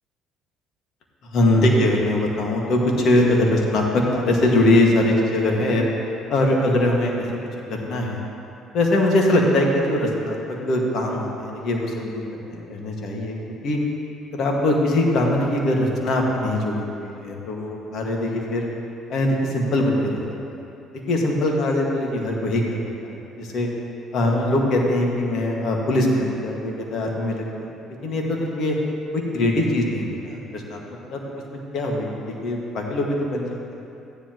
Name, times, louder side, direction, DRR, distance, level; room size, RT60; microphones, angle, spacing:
voice 1, 1.2-5.8 6.3-7.3 7.9-8.2 8.7-13.4 13.6-13.8 14.3-18.7 19.1-20.6 21.1-23.7 24.1-27.7 28.0-28.8 29.1-30.8 31.1-31.4 31.7-33.6, left 1 dB, 60° left, -1 dB, 1.9 m, -22 dB
14.5 x 10.0 x 3.1 m, 2.8 s
supercardioid pair, 65°, 0 cm